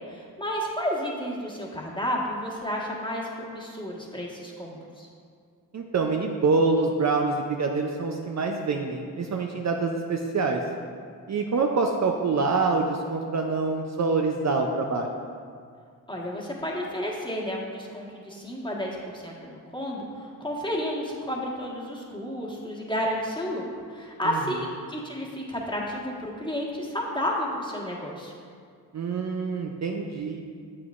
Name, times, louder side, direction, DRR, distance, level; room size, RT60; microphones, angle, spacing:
voice 1, 0.1-5.1 16.1-28.3, equal, 10° left, -3 dB, 1.4 m, -31 dB
voice 2, 5.7-10.6 11.3-15.2 24.2-24.4 28.9-30.4, right 4 dB, 45° right, 2 dB, 0.5 m, -26 dB
7.6 x 5.9 x 2.5 m, 2.2 s
cardioid pair, 45°, 39 cm